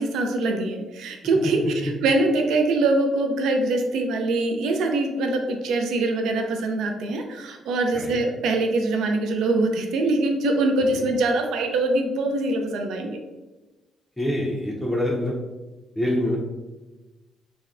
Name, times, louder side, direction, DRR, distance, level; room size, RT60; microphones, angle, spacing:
voice 1, 0.0-13.2, right 2 dB, 80° right, 3 dB, 0.3 m, -23 dB
voice 2, 14.2-15.4 16.0-16.4, left 1 dB, 10° left, -3 dB, 0.4 m, -25 dB
3.4 x 2.1 x 2.3 m, 1.1 s
cardioid pair, 90°, 0 cm